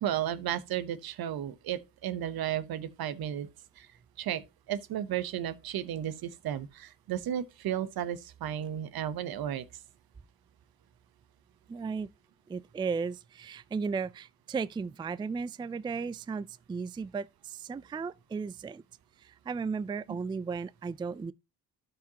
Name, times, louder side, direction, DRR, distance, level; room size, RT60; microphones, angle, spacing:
voice 1, 0.0-3.5 3.8-3.9 4.2-4.4 4.7-9.7, right 10 dB, 70° right, 0.9 m, -33 dB
voice 2, 11.7-12.1 12.5-18.8 19.2-21.3, right 5 dB, 15° right, 0.3 m, -35 dB
12.5 x 5.1 x 2.8 m
cardioid pair, 75°, 37 cm